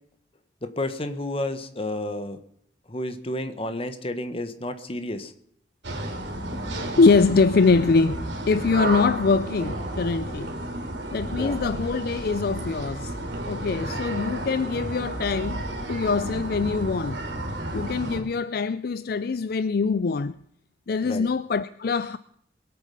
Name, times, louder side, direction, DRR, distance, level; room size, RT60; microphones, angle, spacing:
voice 1, 0.6-2.4 2.9-5.3 11.4-11.6 21.0-21.3, left 1 dB, 35° left, 1.4 m, -31 dB
sound 1, 5.8-18.2, right 1 dB, 85° right, 3.1 m, -32 dB
voice 2, 7.0-10.6 11.1-13.2 13.5-17.2 17.7-20.4 20.9-22.2, left 4 dB, 60° left, 0.5 m, -23 dB
22.0 x 8.4 x 5.5 m
head